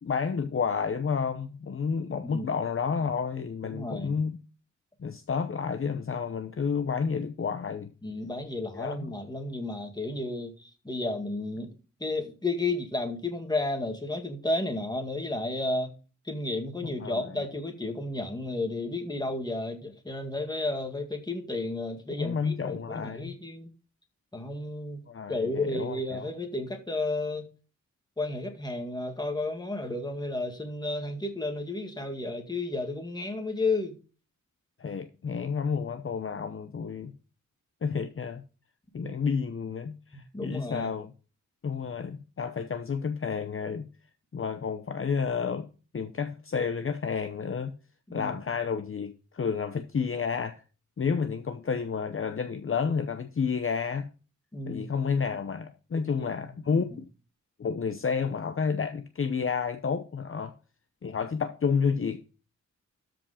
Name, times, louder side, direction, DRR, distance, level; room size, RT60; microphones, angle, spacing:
voice 1, 0.0-4.4 5.0-7.9 8.7-9.1 16.8-17.4 22.1-23.3 25.1-26.3 34.8-37.1 37.8-38.4 38.9-41.1 41.6-43.9 44.3-45.7 45.9-47.7 48.1-50.6 51.0-54.1 54.7-57.1 57.6-60.5 61.0-62.2, left 6 dB, 45° left, 0.8 m, -30 dB
voice 2, 3.6-4.2 8.0-11.7 12.0-15.9 16.3-23.7 24.3-25.0 25.3-27.5 28.2-34.0 39.0-39.1 40.1-40.9 48.1-48.3 54.5-54.9 55.9-56.3, left 2 dB, 15° left, 1.9 m, -32 dB
13.0 x 5.2 x 5.0 m
wide cardioid pair, 165°, 31 cm